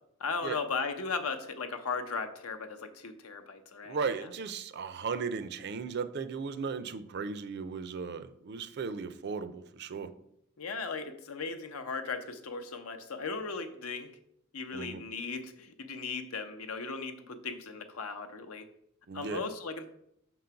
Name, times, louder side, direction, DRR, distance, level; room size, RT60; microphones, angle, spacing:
voice 1, 0.2-4.1 10.6-14.1 14.5-18.7 19.1-19.9, left 4 dB, 75° left, 7 dB, 0.7 m, -37 dB
voice 2, 3.8-10.1 14.7-15.0 19.1-19.4, right 5 dB, 50° right, 13 dB, 0.4 m, -36 dB
6.0 x 3.9 x 5.7 m, 0.75 s
head